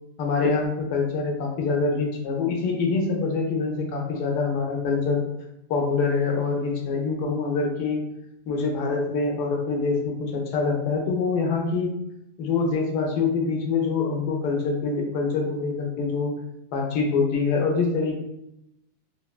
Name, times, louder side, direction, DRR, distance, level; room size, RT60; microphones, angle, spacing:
voice 1, 0.2-5.2 5.7-8.0 8.5-11.9 12.4-16.3 16.7-18.2, left 4 dB, 80° left, 1 dB, 1.2 m, -25 dB
3.5 x 2.1 x 2.2 m, 0.85 s
omnidirectional pair, 1.7 m